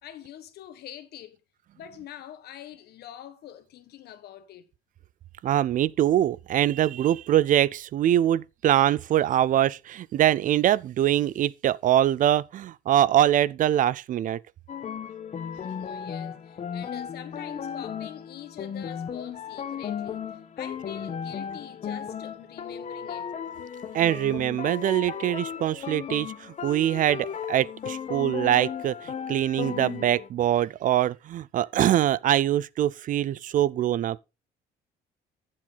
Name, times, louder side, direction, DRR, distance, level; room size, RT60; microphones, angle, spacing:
voice 1, 0.0-1.4 1.7-4.7 15.5-23.3, left 11 dB, 70° left, 1.5 m, -45 dB
voice 2, 5.4-14.4 23.9-34.2, right 12 dB, 50° right, 0.4 m, -23 dB
sound 1, 14.7-30.3, left 7 dB, 45° left, 1.3 m, -35 dB
10.5 x 7.5 x 4.0 m
cardioid pair, 110°, 17 cm